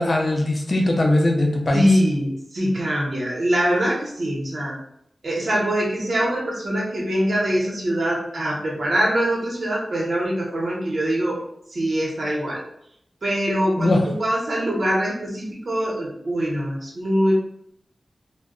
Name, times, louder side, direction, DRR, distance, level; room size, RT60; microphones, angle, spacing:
voice 1, 0.0-1.9 13.8-14.0, left 1 dB, 45° left, 0 dB, 0.5 m, -20 dB
voice 2, 1.7-4.8 5.2-11.4 11.7-12.6 13.2-17.3, equal, 60° right, -3 dB, 0.9 m, -23 dB
2.2 x 2.1 x 3.7 m, 0.73 s
wide cardioid pair, 115°, 0 cm